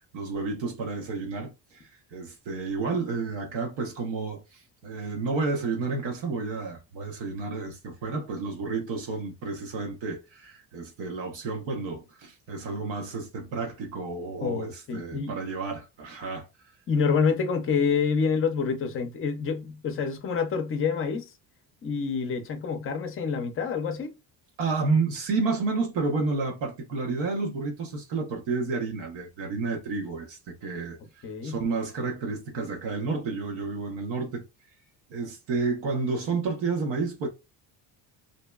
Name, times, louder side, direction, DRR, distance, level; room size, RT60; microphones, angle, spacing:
voice 1, 0.0-1.8 2.1-16.5 24.6-31.0 31.4-34.5 35.1-37.3, right 4 dB, 85° right, 0.9 m, -30 dB
voice 2, 14.4-15.4 16.9-21.3 21.8-24.1 31.2-31.6, left 5 dB, 30° left, 0.5 m, -27 dB
2.7 x 2.2 x 2.2 m
cardioid pair, 160°, 43 cm